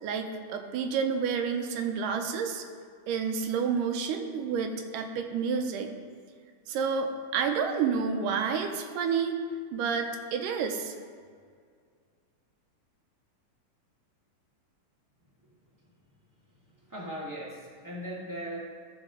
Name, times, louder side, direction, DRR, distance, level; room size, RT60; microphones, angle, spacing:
voice 1, 0.0-2.6 3.1-5.9 6.7-9.4 9.7-10.9, right 6 dB, 85° right, 5 dB, 2.3 m, -29 dB
voice 2, 16.6-18.6, equal, 10° right, -6 dB, 0.9 m, -39 dB
14.5 x 5.1 x 3.7 m, 2.1 s
omnidirectional pair, 3.8 m